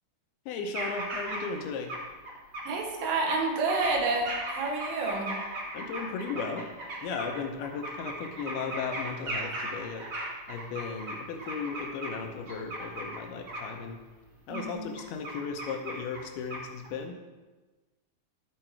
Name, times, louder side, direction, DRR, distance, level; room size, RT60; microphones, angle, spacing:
voice 1, 0.5-1.9 5.7-6.7 7.0-10.1 10.5-14.0 14.5-17.2, left 5 dB, 80° left, 4 dB, 2.5 m, -36 dB
sound 1, 0.7-1.6 1.9-2.6 3.0-12.1 12.5-13.2 13.5-13.7 14.5-14.6 15.0-16.2 16.5-16.9, right 1 dB, 70° right, 1.0 m, -37 dB
voice 2, 2.6-5.4 14.5-14.9, right 3 dB, 90° right, 1 dB, 3.3 m, -29 dB
13.0 x 4.4 x 4.4 m, 1.2 s
omnidirectional pair, 4.7 m